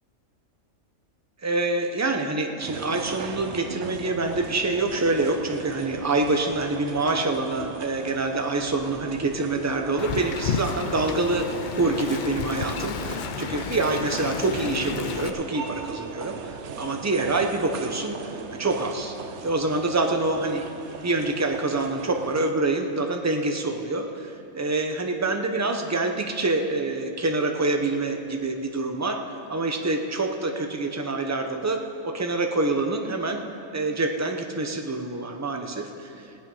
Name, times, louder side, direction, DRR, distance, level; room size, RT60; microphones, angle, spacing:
voice 1, 1.4-11.5 11.8-19.1 19.4-33.4 33.7-36.3, right 2 dB, 15° right, 4 dB, 0.7 m, -26 dB
sound 1, 2.6-22.5, right 6 dB, 60° right, 1.0 m, -39 dB
Wind, 10.0-15.3, left 7 dB, 65° left, 0.4 m, -32 dB
17.0 x 10.5 x 5.6 m, 2.8 s
omnidirectional pair, 1.4 m